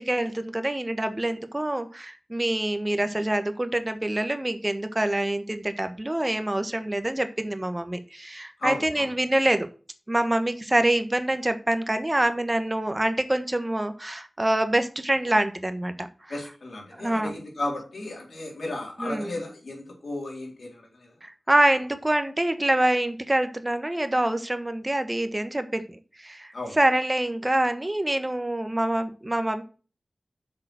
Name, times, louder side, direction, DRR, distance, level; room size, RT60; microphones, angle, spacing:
voice 1, 0.0-9.7 10.1-16.1 17.0-17.4 19.0-19.3 21.2-25.9 26.2-29.6, right 1 dB, 25° right, 9 dB, 1.2 m, -25 dB
voice 2, 8.6-9.1 16.3-21.1 26.5-26.8, left 2 dB, 85° left, 0 dB, 4.0 m, -34 dB
7.2 x 6.7 x 6.3 m, 0.37 s
cardioid pair, 45°, 0 cm